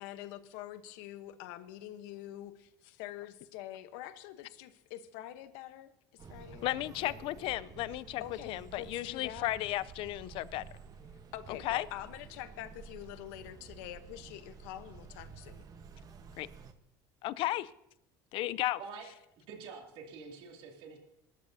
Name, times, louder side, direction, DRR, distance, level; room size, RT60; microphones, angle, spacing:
voice 1, 0.0-7.2 8.2-9.6 11.3-15.6, left 13 dB, 80° left, 11 dB, 1.0 m, -46 dB
sound 1, 6.2-16.7, right 5 dB, 40° right, 1.1 m, -51 dB
voice 2, 6.6-8.2 8.5-10.6 11.6-11.9 16.4-16.5 17.2-17.7 18.3-18.8, left 16 dB, 60° left, 17 dB, 0.5 m, -34 dB
voice 3, 19.5-21.0, right 5 dB, 60° right, 1 dB, 2.6 m, -46 dB
21.5 x 13.0 x 2.8 m, 0.83 s
supercardioid pair, 110°, 10 cm